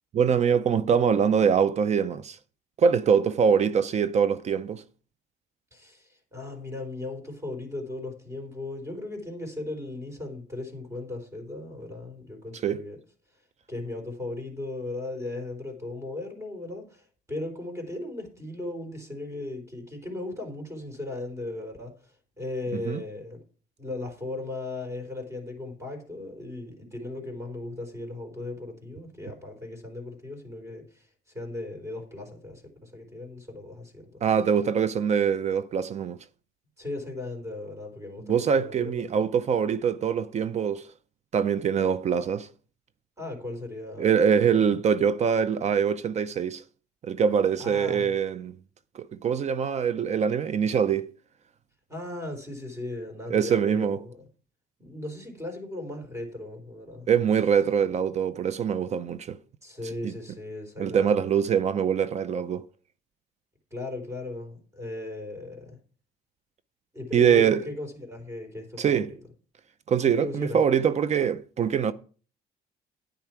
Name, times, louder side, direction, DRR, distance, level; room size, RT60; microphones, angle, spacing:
voice 1, 0.1-2.4 2.8-4.8 12.6-12.8 22.7-23.0 34.2-36.2 38.3-40.9 41.3-42.5 44.0-46.6 47.0-48.5 48.9-51.1 53.3-54.0 57.1-59.4 60.0-60.1 60.8-62.6 67.1-67.6 68.8-69.1 69.9-71.9, right 7 dB, 40° right, 0.6 m, -23 dB
voice 2, 5.7-13.0 13.3-13.4 13.7-23.4 23.8-31.1 31.3-34.2 36.8-39.2 43.2-44.6 47.6-48.2 51.9-54.3 54.8-57.1 59.6-61.4 63.7-65.8 66.9-69.1 70.0-70.6, left 2 dB, 15° right, 4.2 m, -37 dB
10.5 x 9.3 x 4.6 m
cardioid pair, 110°, 17 cm